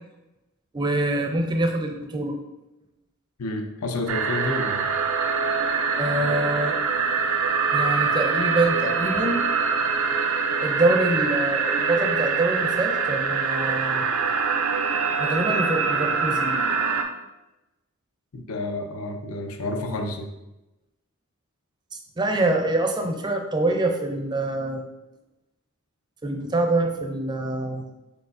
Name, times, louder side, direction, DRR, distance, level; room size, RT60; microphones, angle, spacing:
voice 1, 0.7-2.4 6.0-6.8 7.7-9.4 10.6-14.1 15.2-16.6 22.2-24.8 26.2-27.9, right 2 dB, 20° right, 4 dB, 0.4 m, -25 dB
voice 2, 3.4-4.9 18.3-20.3, left 2 dB, 70° left, 5 dB, 0.6 m, -30 dB
sound 1, 4.1-17.0, right 5 dB, 75° right, 0.4 m, -24 dB
4.6 x 3.9 x 2.5 m, 0.98 s
head